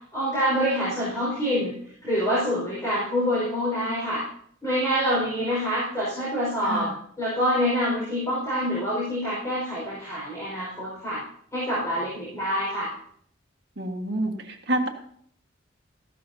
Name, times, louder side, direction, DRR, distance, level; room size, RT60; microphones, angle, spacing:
voice 1, 0.1-1.7 2.0-4.2 4.6-6.9 7.2-11.2 11.5-12.9, equal, 15° left, -8 dB, 5.0 m, -26 dB
voice 2, 13.8-14.9, right 1 dB, 60° right, 4 dB, 1.6 m, -28 dB
15.0 x 12.5 x 2.8 m, 0.62 s
head